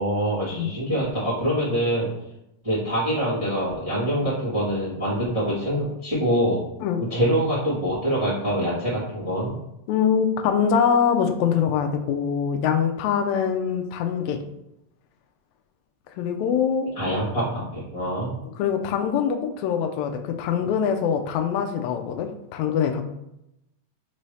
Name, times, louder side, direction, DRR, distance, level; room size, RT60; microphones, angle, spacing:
voice 1, 0.0-2.1 2.6-6.6 7.1-9.5 16.9-18.3, equal, 25° right, -10 dB, 0.7 m, -25 dB
voice 2, 9.9-14.4 16.2-16.9 18.4-23.0, left 7 dB, 80° left, 5 dB, 1.7 m, -23 dB
5.4 x 2.7 x 3.2 m, 0.84 s
omnidirectional pair, 3.5 m